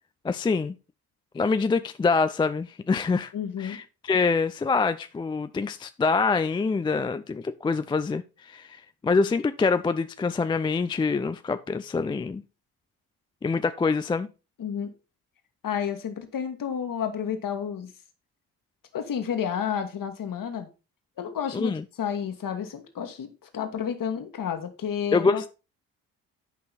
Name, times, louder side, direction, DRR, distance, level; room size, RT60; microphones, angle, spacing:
voice 1, 0.2-0.7 1.3-3.3 3.6-12.4 13.4-14.3 21.5-21.8 25.1-25.5, left 4 dB, 10° left, 0.4 m, -25 dB
voice 2, 3.3-3.8 14.6-14.9 15.6-17.9 18.9-20.7 21.2-25.5, left 8 dB, 45° left, 1.7 m, -31 dB
10.5 x 5.5 x 4.1 m
figure-of-eight pair, 45°, 45 cm